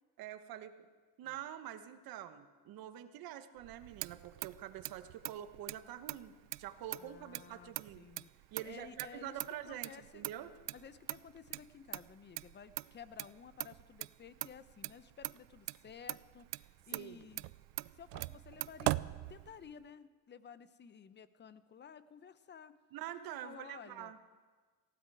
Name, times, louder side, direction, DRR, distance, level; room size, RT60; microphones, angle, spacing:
voice 1, 0.2-0.9 1.2-8.0 8.5-10.5 16.9-17.3 22.9-24.2, right 11 dB, 65° right, 9 dB, 1.3 m, -46 dB
Motor vehicle (road), 3.6-19.9, right 22 dB, 90° right, 0.5 m, -43 dB
voice 2, 7.0-8.3 8.6-10.3 10.7-17.5 18.0-22.8 23.4-24.1, left 7 dB, 30° left, 14 dB, 0.8 m, -54 dB
18.5 x 15.5 x 4.8 m, 1.4 s
cardioid pair, 110°, 39 cm